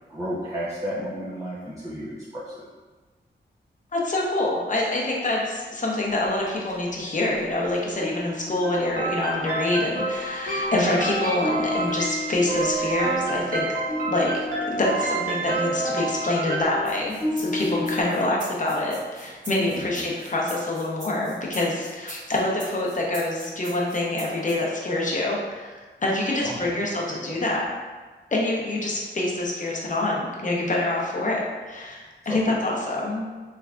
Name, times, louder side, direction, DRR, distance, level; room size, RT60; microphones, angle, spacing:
voice 1, 0.1-2.7 19.7-20.0 26.4-27.4 32.2-32.6, equal, 15° right, -8 dB, 0.6 m, -33 dB
voice 2, 3.9-13.7 14.1-27.7 28.3-33.2, left 2 dB, 40° left, -3 dB, 0.7 m, -26 dB
sound 1, 6.1-7.7 8.0-18.0, left 2 dB, 15° left, 1.1 m, -35 dB
sound 2, 8.6-16.6, right 2 dB, 50° right, 0.9 m, -28 dB
sound 3, 16.8-24.5, right 1 dB, 75° right, 1.4 m, -42 dB
3.4 x 3.3 x 2.4 m, 1.4 s
wide cardioid pair, 75°, 19 cm